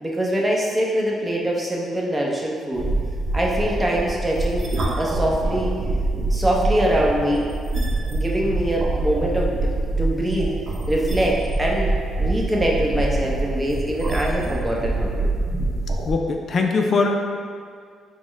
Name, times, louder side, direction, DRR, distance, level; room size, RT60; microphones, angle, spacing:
voice 1, 0.0-2.9 3.3-4.7 5.0-5.7 6.3-7.5 8.1-9.7 10.0-10.6 10.9-15.3, right 1 dB, 15° right, -3 dB, 0.7 m, -23 dB
sound 1, 2.8-16.1, right 2 dB, 55° right, 0.7 m, -25 dB
voice 2, 16.0-17.1, left 4 dB, 50° left, 3 dB, 0.3 m, -21 dB
4.2 x 2.1 x 4.5 m, 2.2 s
cardioid pair, 90°, 0 cm